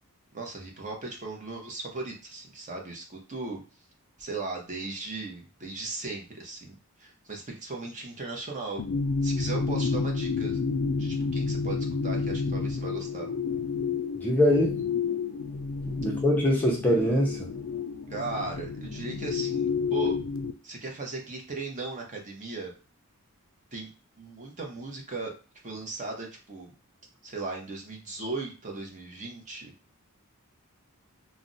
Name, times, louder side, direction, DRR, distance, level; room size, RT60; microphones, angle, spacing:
voice 1, 0.3-3.6 4.2-8.8 9.2-10.6 11.0-11.8 12.0-13.3 18.1-20.1 20.6-22.7 23.7-23.9 24.2-25.3 25.6-26.7 27.2-29.7, right 3 dB, 35° right, 1 dB, 0.7 m, -37 dB
sound 1, 8.8-20.5, left 5 dB, 65° left, 0.4 m, -30 dB
voice 2, 14.2-14.8 15.9-17.5, equal, 10° left, -2 dB, 0.5 m, -23 dB
2.4 x 2.0 x 3.8 m, 0.35 s
head